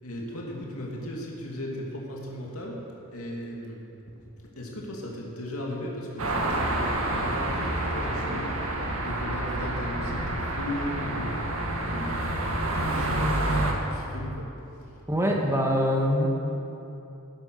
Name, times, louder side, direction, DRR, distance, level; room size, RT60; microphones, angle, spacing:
voice 1, 0.0-2.8 3.1-3.8 4.4-11.4 11.9-14.5 14.8-14.9, left 1 dB, 80° left, -2 dB, 2.7 m, -37 dB
sound 1, 6.2-13.7, right 1 dB, 70° right, 2.0 m, -28 dB
voice 2, 15.1-16.3, equal, 15° right, 0 dB, 1.7 m, -24 dB
17.5 x 10.0 x 6.5 m, 2.9 s
head